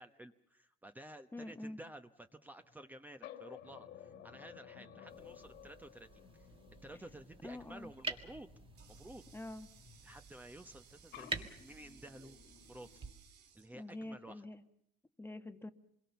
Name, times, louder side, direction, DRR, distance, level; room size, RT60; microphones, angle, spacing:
voice 1, 0.0-6.5 6.8-8.5 8.9-9.2 10.0-12.4 12.7-12.9 13.5-14.5, right 1 dB, 10° right, 8 dB, 1.0 m, -53 dB
voice 2, 1.3-1.8 7.4-7.9 9.3-9.7 13.7-14.6 15.2-15.7, left 2 dB, 15° left, 9 dB, 1.2 m, -46 dB
sound 1, 2.6-2.9 3.2-10.9 11.1-13.1, left 9 dB, 80° left, 2.2 m, -56 dB
sound 2, 5.1-13.1, right 3 dB, 30° right, 2.1 m, -48 dB
Water tap faucet, 8.1-14.6, right 8 dB, 80° right, 3.1 m, -64 dB
27.0 x 22.0 x 7.0 m, 0.73 s
cardioid pair, 110°, 17 cm